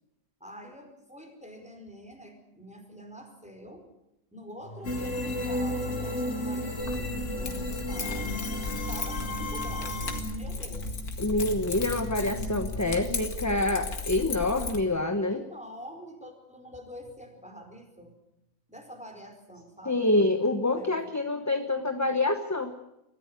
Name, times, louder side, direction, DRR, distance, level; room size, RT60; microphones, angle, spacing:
voice 1, 0.4-3.9 4.3-8.4 8.7-11.0 15.3-18.1 18.7-20.0 20.7-21.1, equal, 5° right, 3 dB, 4.8 m, -46 dB
sound 1, 4.6-13.2, right 2 dB, 35° left, 4.5 m, -42 dB
sound 2, 4.8-10.2, left 1 dB, 55° left, 2.5 m, -33 dB
Keys jangling, 6.8-14.8, left 3 dB, 85° left, 2.6 m, -35 dB
voice 2, 11.2-15.4 19.9-22.7, left 2 dB, 15° left, 7 dB, 1.0 m, -26 dB
23.0 x 15.0 x 9.6 m, 0.90 s
omnidirectional pair, 1.6 m